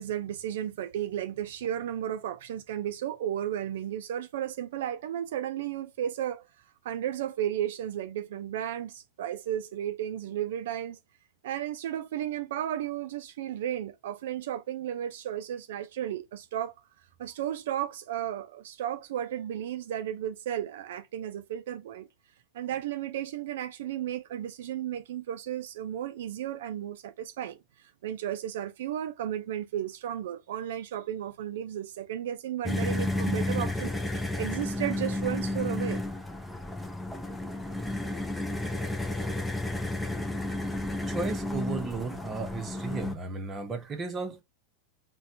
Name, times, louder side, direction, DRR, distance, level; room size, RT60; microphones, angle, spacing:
voice 1, 0.0-6.5 6.8-11.0 11.4-16.7 17.2-22.1 22.5-36.0, right 11 dB, 80° right, 0.3 m, -34 dB
sound 1, 32.6-43.1, left 2 dB, 5° left, 0.5 m, -32 dB
voice 2, 41.1-44.4, right 3 dB, 20° right, 0.9 m, -34 dB
4.1 x 2.2 x 2.5 m
supercardioid pair, 145°, 0 cm